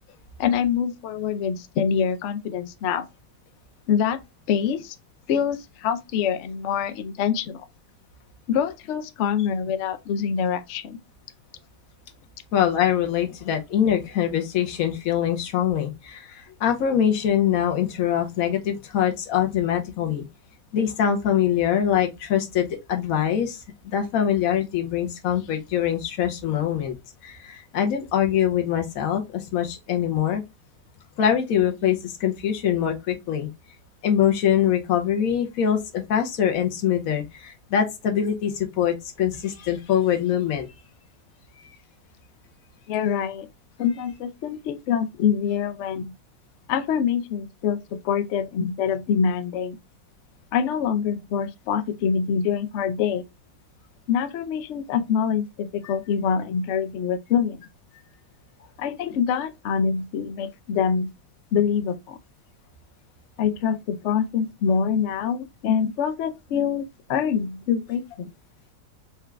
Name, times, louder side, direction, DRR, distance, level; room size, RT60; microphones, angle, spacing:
voice 1, 0.4-3.1 3.9-4.2 4.5-5.0 5.3-7.6 8.5-11.0 42.9-43.5 43.8-46.1 46.7-49.8 50.5-53.2 54.1-57.6 58.8-61.1 61.5-62.2 63.4-68.3, left 7 dB, 85° left, 0.6 m, -25 dB
voice 2, 12.5-20.2 20.7-27.0 27.2-30.4 31.2-33.5 34.0-40.7 55.8-55.9, left 9 dB, 65° left, 1.1 m, -23 dB
4.5 x 2.4 x 3.2 m
omnidirectional pair, 1.8 m